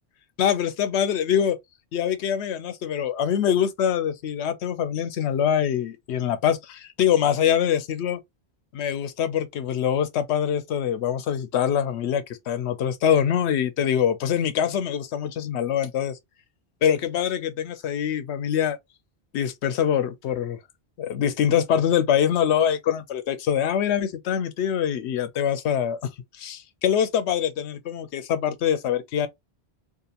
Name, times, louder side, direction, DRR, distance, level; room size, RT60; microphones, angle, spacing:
voice 1, 0.4-1.6 1.9-8.2 8.7-16.2 16.8-18.8 19.3-20.6 21.0-26.0 26.4-29.3, left 9 dB, 85° left, 0.9 m, -24 dB
2.8 x 2.4 x 2.4 m
omnidirectional pair, 1.1 m